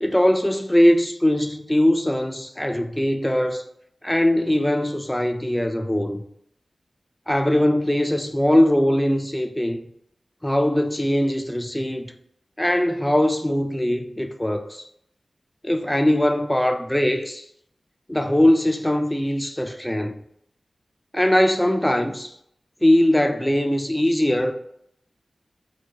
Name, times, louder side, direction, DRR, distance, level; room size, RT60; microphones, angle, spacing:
voice 1, 0.0-3.6 4.0-6.2 7.3-9.8 10.4-12.1 12.6-14.8 15.6-17.4 18.1-20.2 21.1-22.3 22.8-24.5, left 1 dB, 10° left, 0.3 m, -21 dB
4.2 x 2.2 x 2.8 m
wide cardioid pair, 85°, 0 cm